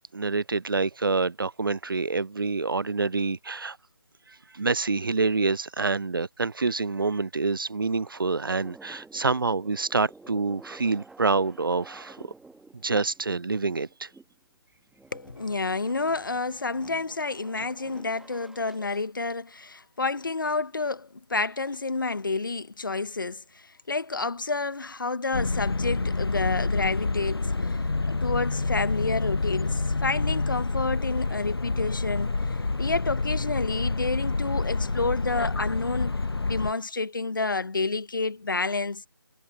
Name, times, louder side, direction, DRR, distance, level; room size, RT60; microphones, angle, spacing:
voice 1, 0.0-3.8 4.5-12.3 12.8-14.1, right 4 dB, 65° right, 0.5 m, -27 dB
sound 1, 7.8-14.4 14.8-19.0, right 3 dB, ahead, 1.4 m, -52 dB
voice 2, 15.1-27.7 28.1-39.0, left 3 dB, 60° left, 1.1 m, -29 dB
sound 2, 25.3-36.7, left 3 dB, 85° left, 0.5 m, -28 dB
figure-of-eight pair, 155°, 12 cm